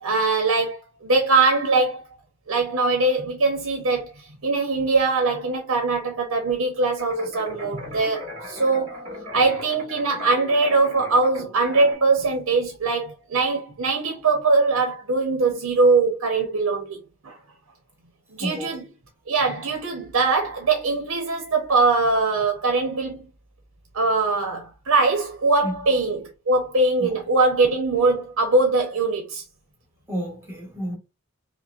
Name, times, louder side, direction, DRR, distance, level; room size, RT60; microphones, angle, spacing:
voice 1, 0.0-2.0 2.5-17.4 18.3-18.8 19.3-23.2 23.9-29.4, right 3 dB, 90° right, 0.9 m, -22 dB
sound 1, 7.0-12.0, left 2 dB, 35° right, 2.1 m, -38 dB
voice 2, 18.4-18.8 25.6-25.8 27.0-27.2 30.1-31.0, equal, 10° right, 1.1 m, -31 dB
5.3 x 2.1 x 2.4 m
head